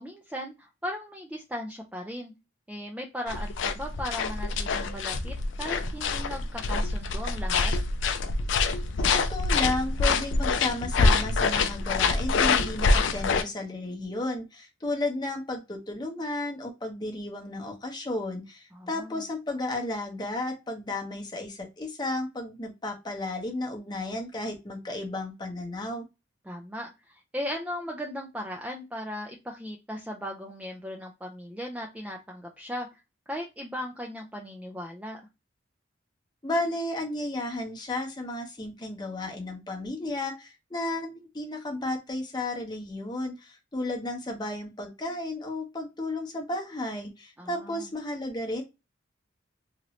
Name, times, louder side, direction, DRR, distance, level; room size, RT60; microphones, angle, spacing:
voice 1, 0.0-2.3 2.7-7.7 18.7-19.2 26.5-32.9 33.3-35.2 47.4-47.9, equal, 5° right, 1 dB, 0.3 m, -37 dB
sound 1, 3.3-13.4, left 4 dB, 75° left, 0.4 m, -26 dB
voice 2, 9.0-26.0 36.4-48.6, left 2 dB, 20° left, 2 dB, 0.7 m, -33 dB
2.9 x 2.6 x 3.0 m, 0.25 s
head